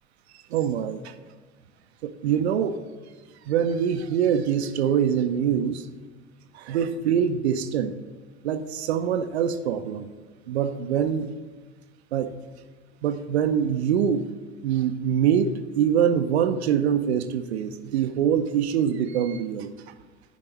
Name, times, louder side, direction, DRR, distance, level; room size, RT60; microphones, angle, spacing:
voice 1, 0.5-1.1 2.0-2.8 3.5-5.9 6.5-7.9 8.4-10.1 10.5-11.3 12.1-12.3 13.0-14.2 14.6-19.7, right 8 dB, 65° right, 10 dB, 0.5 m, -24 dB
10.5 x 4.5 x 3.0 m, 1.4 s
figure-of-eight pair, 75°, 35 cm